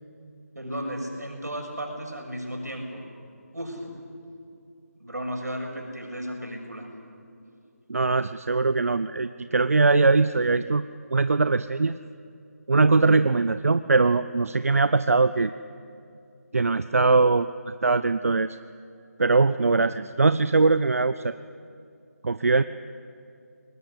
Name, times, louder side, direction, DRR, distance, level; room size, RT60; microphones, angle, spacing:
voice 1, 0.5-3.0 3.5-3.9 5.0-6.9, equal, 85° right, 2 dB, 6.7 m, -34 dB
voice 2, 7.9-10.8 11.1-12.0 12.7-15.5 16.5-18.6 19.2-21.3 22.2-22.6, right 3 dB, 60° right, 13 dB, 0.6 m, -21 dB
22.0 x 19.5 x 9.9 m, 2.5 s
figure-of-eight pair, 160°, 9 cm